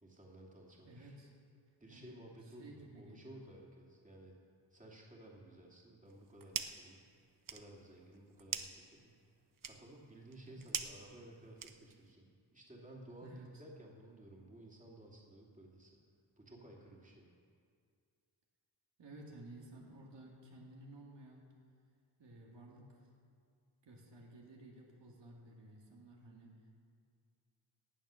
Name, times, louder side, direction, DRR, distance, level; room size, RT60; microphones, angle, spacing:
voice 1, 0.0-1.1 1.8-4.3 4.7-7.0 7.5-9.1 9.6-12.2 12.5-16.0 16.4-17.3, right 1 dB, 15° right, -3 dB, 2.6 m, -55 dB
voice 2, 0.8-1.3 1.9-2.2 2.5-3.5 10.5-10.7 13.2-13.6 19.0-21.5 22.2-23.1 23.8-26.6, right 1 dB, 70° right, -2 dB, 2.3 m, -55 dB
sound 1, 6.1-6.9 7.2-12.1, right 7 dB, 50° right, 0.8 m, -44 dB
17.5 x 7.1 x 6.4 m, 2.2 s
cardioid pair, 80°, 44 cm